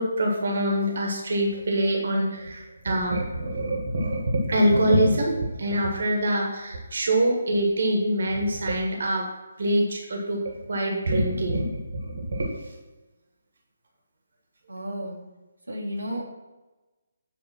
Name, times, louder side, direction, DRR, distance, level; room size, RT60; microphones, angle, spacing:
voice 1, 0.0-9.3 9.6-12.8, right 1 dB, 60° right, 0 dB, 1.7 m, -25 dB
voice 2, 14.7-15.2 15.7-16.2, equal, 85° right, -3 dB, 1.7 m, -32 dB
8.6 x 3.7 x 5.8 m, 1.1 s
figure-of-eight pair, 145°, 0 cm